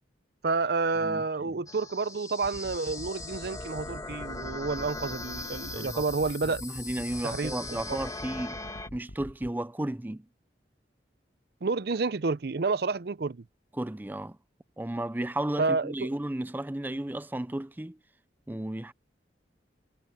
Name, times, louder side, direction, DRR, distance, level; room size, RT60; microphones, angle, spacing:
voice 1, 0.4-6.6 7.2-7.6 11.6-13.4 15.6-16.1, right 4 dB, 60° right, 0.5 m, -29 dB
voice 2, 1.0-1.6 5.7-6.0 6.4-8.6 8.9-10.3 13.7-14.4 14.8-18.0 18.5-18.9, right 1 dB, 10° right, 0.4 m, -34 dB
sound 1, 1.7-8.9, left 3 dB, 20° left, 2.1 m, -40 dB
sound 2, 2.4-9.5, equal, 70° left, 5.0 m, -45 dB
head